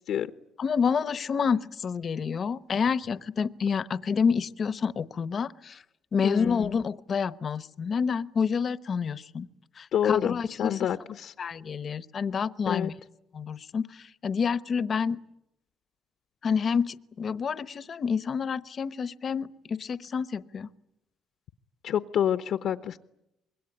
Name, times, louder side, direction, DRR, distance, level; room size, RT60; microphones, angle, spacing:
voice 1, 0.6-5.8 6.1-9.5 9.8-10.9 11.4-12.9 13.3-15.2 16.4-20.7, left 6 dB, 40° left, 15 dB, 0.9 m, -28 dB
voice 2, 6.2-6.7 9.9-11.3 12.7-12.9 21.8-23.0, left 9 dB, 65° left, 10 dB, 0.9 m, -28 dB
25.5 x 22.0 x 9.9 m, 0.85 s
cardioid pair, 120°, 0 cm